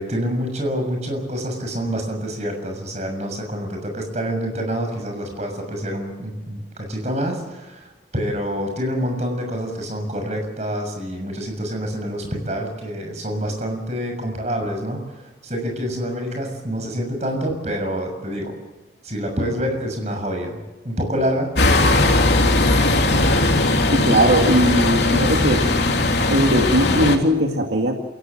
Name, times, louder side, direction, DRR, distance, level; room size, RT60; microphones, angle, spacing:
voice 1, 0.0-18.5 19.0-20.6 20.8-22.3, equal, 40° right, 3 dB, 6.7 m, -27 dB
sound 1, 21.5-27.2, left 2 dB, 75° left, 3.0 m, -18 dB
voice 2, 23.9-25.6 26.3-27.9, right 1 dB, 85° right, 2 dB, 2.2 m, -19 dB
28.0 x 16.5 x 7.7 m, 1.1 s
head